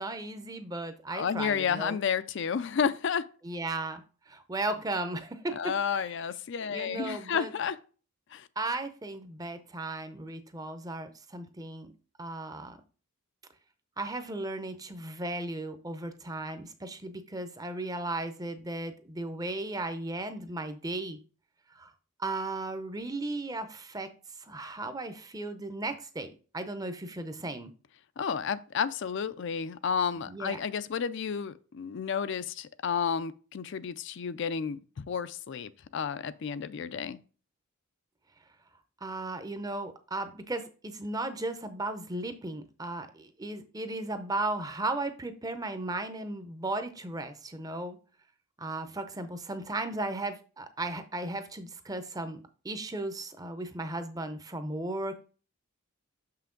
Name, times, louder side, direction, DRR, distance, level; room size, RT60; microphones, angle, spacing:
voice 1, 0.0-2.0 3.4-5.6 6.7-7.5 8.6-11.9 12.2-12.8 14.0-21.2 21.7-21.9 22.2-24.1 24.5-27.7 30.3-30.6 39.0-48.0 48.6-55.2, right 2 dB, 15° right, 0.6 m, -36 dB
voice 2, 1.1-3.3 5.5-7.8 8.3-8.5 28.2-37.2, left 6 dB, 55° left, 0.4 m, -31 dB
6.7 x 5.7 x 3.8 m
head